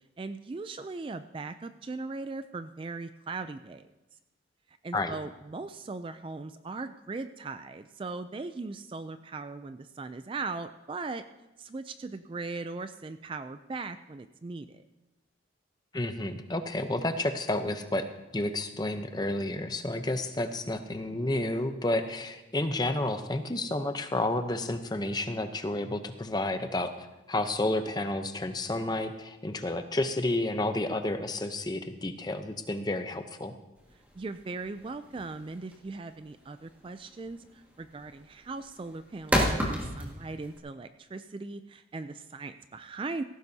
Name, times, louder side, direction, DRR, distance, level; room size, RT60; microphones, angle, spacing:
voice 1, 0.2-3.8 4.8-11.2 11.6-14.8 34.1-43.2, right 3 dB, 25° right, 11 dB, 0.3 m, -39 dB
voice 2, 15.9-18.1 18.3-26.9 27.3-33.5, left 2 dB, 20° left, 8 dB, 0.7 m, -31 dB
sound 1, 33.8-40.6, equal, 10° right, 1.8 m, -32 dB
17.5 x 15.0 x 2.8 m, 1.0 s
head